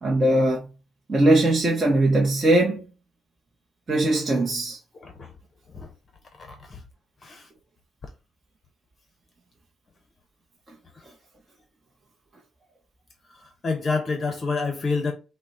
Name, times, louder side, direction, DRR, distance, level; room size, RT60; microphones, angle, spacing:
voice 1, 0.0-0.7 1.1-2.8 3.9-4.8, right 1 dB, 25° right, 0.8 m, -20 dB
voice 2, 5.0-5.3 5.7-5.9 6.4-6.8 7.2-7.5 11.0-11.1 13.4-15.1, left 4 dB, 30° left, 0.7 m, -28 dB
5.9 x 2.1 x 4.1 m
cardioid pair, 155°, 0 cm